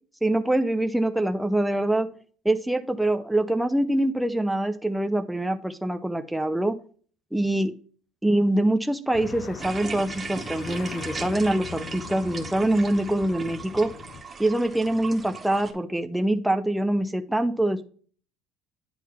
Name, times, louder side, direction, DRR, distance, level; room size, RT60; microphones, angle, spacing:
voice 1, 0.2-2.1 2.4-6.8 7.3-7.7 8.2-13.9 14.4-17.8, right 1 dB, 5° right, 7 dB, 0.4 m, -24 dB
sound 1, 9.1-14.2, left 9 dB, 50° left, 0.4 m, -40 dB
sound 2, 9.6-15.7, right 5 dB, 20° right, 0.9 m, -38 dB
9.2 x 3.8 x 4.3 m, 0.43 s
cardioid pair, 145°, 0 cm